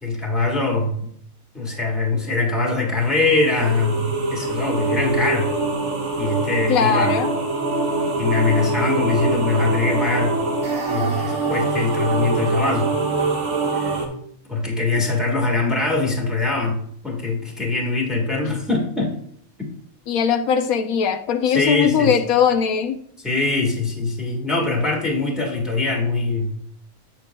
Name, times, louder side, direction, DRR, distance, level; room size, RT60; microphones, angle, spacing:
voice 1, 0.0-1.0 1.5-5.5 6.2-7.1 8.2-10.4 10.9-12.9 13.7-13.9 14.5-19.1 19.6-19.7 21.5-22.1 23.2-26.5, left 3 dB, ahead, 0 dB, 1.4 m, -22 dB
sound 1, 3.0-14.1, right 3 dB, 60° right, 1.6 m, -24 dB
voice 2, 6.7-7.3 20.1-23.0, left 7 dB, 75° left, 7 dB, 1.1 m, -20 dB
8.4 x 7.5 x 2.2 m, 0.65 s
omnidirectional pair, 1.5 m